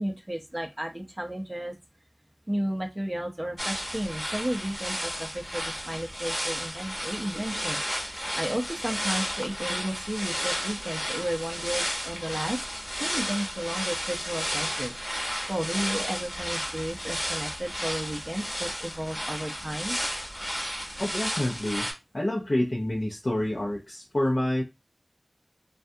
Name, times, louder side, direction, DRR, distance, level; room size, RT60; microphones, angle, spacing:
voice 1, 0.0-1.7 2.5-8.0 8.4-12.6 13.0-14.9 15.5-20.0, right 1 dB, 20° right, 0.6 m, -33 dB
sound 1, 3.6-21.9, equal, ahead, 0.9 m, -33 dB
voice 2, 21.0-21.9 22.1-24.6, left 1 dB, 45° left, 0.6 m, -28 dB
2.3 x 2.2 x 2.6 m
wide cardioid pair, 50°, 0 cm